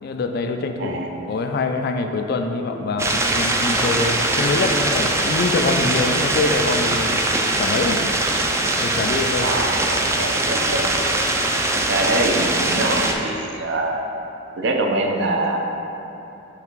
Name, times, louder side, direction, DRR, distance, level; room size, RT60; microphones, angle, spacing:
voice 1, 0.0-7.2 7.6-8.0 8.8-9.6, left 3 dB, 55° left, 5 dB, 0.4 m, -24 dB
sound 1, 3.0-13.1, right 2 dB, 15° right, 0.3 m, -21 dB
voice 2, 9.4-10.9 11.8-14.0 14.6-15.6, right 2 dB, 65° right, 2 dB, 0.6 m, -24 dB
5.7 x 3.6 x 4.5 m, 3.0 s
head